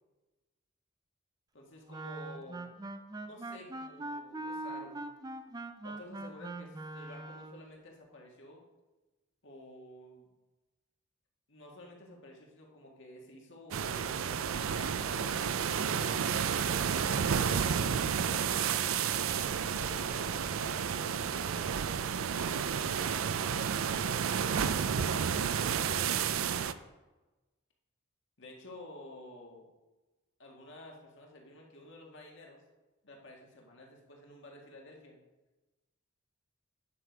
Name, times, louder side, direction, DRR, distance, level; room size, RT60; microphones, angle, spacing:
voice 1, 1.5-2.6 3.2-5.1 5.8-8.6 9.4-10.3 11.5-15.5 16.5-18.9 19.4-21.8 22.6-23.4 24.2-26.4 28.4-29.7 30.4-32.6 33.0-35.2, left 1 dB, 60° left, -1 dB, 1.9 m, -51 dB
Wind instrument woodwind instrument, 1.9-7.6, right 2 dB, 20° right, 0.5 m, -42 dB
sound 1, 13.7-26.7, right 7 dB, 70° right, 0.4 m, -31 dB
9.7 x 6.6 x 4.6 m, 1.1 s
head